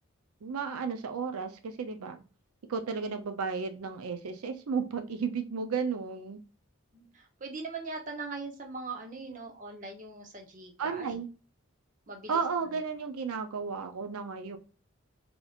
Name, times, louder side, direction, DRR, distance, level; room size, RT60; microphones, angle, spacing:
voice 1, 0.4-2.2 2.7-6.4 10.8-11.3 12.3-14.6, right 5 dB, 90° right, 7 dB, 0.5 m, -33 dB
voice 2, 6.9-11.1 12.1-12.4, right 3 dB, 35° right, 2 dB, 0.8 m, -41 dB
4.1 x 2.9 x 2.4 m, 0.35 s
head